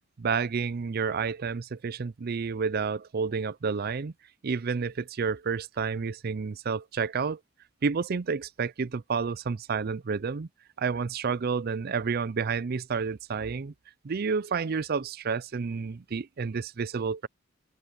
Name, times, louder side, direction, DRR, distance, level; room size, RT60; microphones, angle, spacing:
voice 1, 0.2-4.1 4.4-7.4 7.8-10.5 10.8-13.7 14.0-17.3, right 5 dB, 50° right, 0.5 m, -30 dB
open air
head